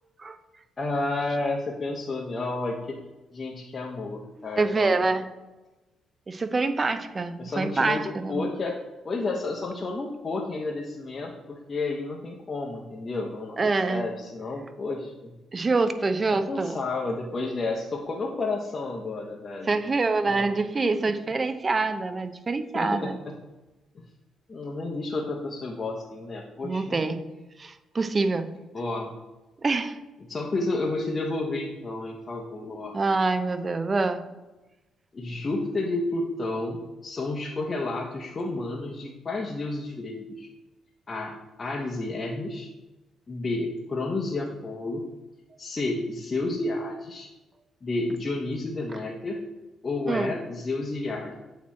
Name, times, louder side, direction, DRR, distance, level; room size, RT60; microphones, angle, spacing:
voice 1, 0.8-3.0 3.3-5.0 7.4-8.8 9.0-15.3 16.3-19.8 20.2-20.5 20.8-20.9 22.7-23.4 23.9-24.0 24.5-27.0 28.7-29.1 30.3-33.0 35.1-40.5 41.1-42.7 43.3-45.0 45.6-47.3 47.8-49.4 49.8-51.4, left 2 dB, 35° left, -1 dB, 0.7 m, -31 dB
voice 2, 4.6-5.3 6.3-8.5 13.6-14.0 15.5-16.8 19.7-23.2 26.6-27.2 27.6-28.5 29.6-30.0 32.9-34.2 50.1-50.3, right 3 dB, 30° right, 10 dB, 0.5 m, -25 dB
8.2 x 3.0 x 4.2 m, 1.1 s
cardioid pair, 90°, 0 cm